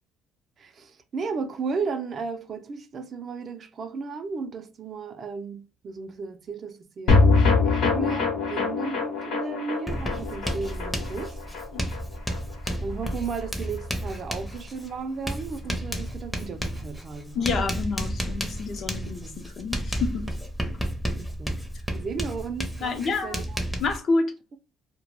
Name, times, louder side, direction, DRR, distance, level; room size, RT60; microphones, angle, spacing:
voice 1, 0.6-7.3 7.6-11.4 12.8-17.5 18.8-19.4 21.2-21.6 21.9-23.6, right 5 dB, 45° right, 0.4 m, -34 dB
sound 1, 7.1-13.5 13.8-13.9 14.1-14.2, left 3 dB, 75° left, 0.8 m, -24 dB
Writing, 9.9-24.0, equal, 5° left, 0.5 m, -32 dB
voice 2, 17.3-20.2 22.8-23.4 23.8-24.3, left 4 dB, 55° left, 0.5 m, -28 dB
2.1 x 2.0 x 3.0 m
cardioid pair, 90°, 0 cm